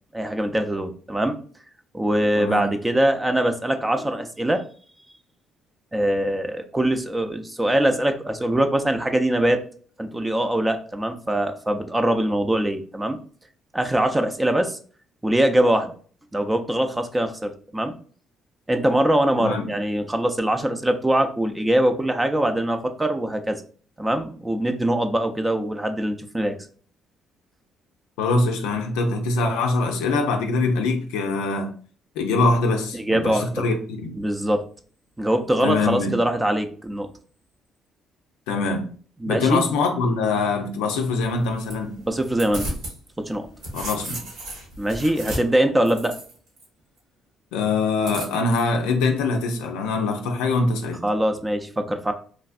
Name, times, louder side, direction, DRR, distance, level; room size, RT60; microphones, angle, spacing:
voice 1, 0.1-1.4 1.9-4.6 5.9-9.6 10.0-13.2 13.7-14.8 15.2-15.9 16.3-17.9 18.7-23.6 24.0-26.6 32.9-33.7 34.2-34.6 35.2-37.1 39.2-39.6 42.1-42.7 43.2-43.5 44.8-46.1 51.0-52.1, right 1 dB, 15° right, 0.5 m, -22 dB
voice 2, 2.4-2.7 19.4-19.7 28.2-31.7 32.2-34.2 35.6-36.2 38.5-38.9 39.3-41.9 43.7-44.2 47.5-51.0, left 3 dB, 85° left, 0.5 m, -23 dB
sound 1, 41.2-43.0 43.3-46.6 48.0-48.6, right 1 dB, 90° right, 1.3 m, -34 dB
3.2 x 2.5 x 2.4 m
supercardioid pair, 65°, 0 cm